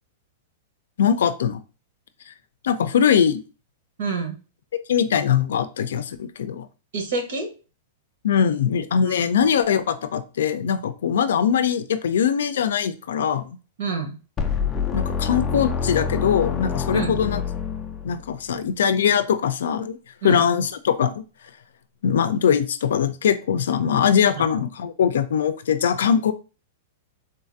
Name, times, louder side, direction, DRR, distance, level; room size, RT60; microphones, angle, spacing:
voice 1, 1.0-1.6 2.6-3.4 4.9-6.7 8.2-13.6 14.9-17.4 18.0-20.0 20.2-21.2 22.0-26.3, left 8 dB, 90° left, 11 dB, 0.4 m, -21 dB
voice 2, 4.0-4.3 6.9-7.5 9.0-9.3 13.8-14.2 16.9-17.2 20.2-20.5, right 4 dB, 65° right, 4 dB, 1.1 m, -28 dB
sound 1, 14.4-18.4, left 6 dB, 15° left, 0.3 m, -26 dB
3.8 x 2.4 x 2.6 m, 0.34 s
supercardioid pair, 170°, 0 cm